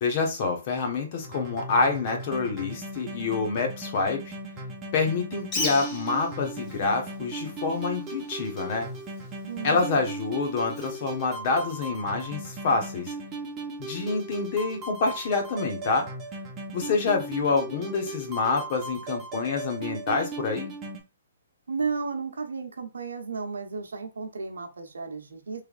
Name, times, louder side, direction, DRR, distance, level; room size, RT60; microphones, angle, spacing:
voice 1, 0.0-4.3 4.9-8.9 9.6-13.1 13.8-16.1 16.7-20.7, left 4 dB, 40° left, 1.1 m, -27 dB
sound 1, 1.2-21.0, right 2 dB, 20° right, 0.9 m, -38 dB
Bird, 5.4-12.1, left 2 dB, 20° left, 1.0 m, -39 dB
voice 2, 9.5-10.1 21.7-25.6, right 4 dB, 85° right, 0.8 m, -33 dB
3.3 x 3.3 x 2.4 m
hypercardioid pair, 145°, 0 cm